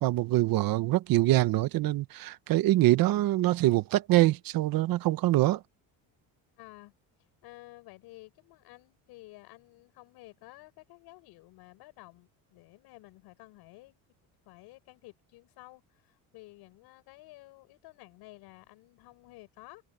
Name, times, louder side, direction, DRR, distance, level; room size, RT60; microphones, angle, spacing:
voice 1, 0.0-5.6, right 16 dB, 65° right, 1.0 m, -24 dB
voice 2, 6.6-6.9 7.4-14.0 14.5-19.8, left 20 dB, 85° left, 7.1 m, -52 dB
cardioid pair, 125°, 37 cm